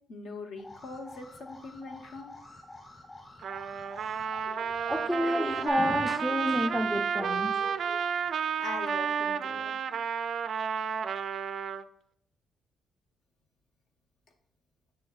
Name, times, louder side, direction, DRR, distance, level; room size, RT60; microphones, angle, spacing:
voice 1, 0.1-2.4 8.3-9.8, left 3 dB, 70° left, 0.9 m, -42 dB
Alarm, 0.6-5.7, left 1 dB, 35° left, 1.7 m, -49 dB
Trumpet, 3.4-11.8, right 7 dB, 60° right, 0.3 m, -31 dB
voice 2, 4.9-8.1, equal, 5° left, 0.4 m, -30 dB
7.6 x 6.7 x 2.3 m
cardioid pair, 90°, 0 cm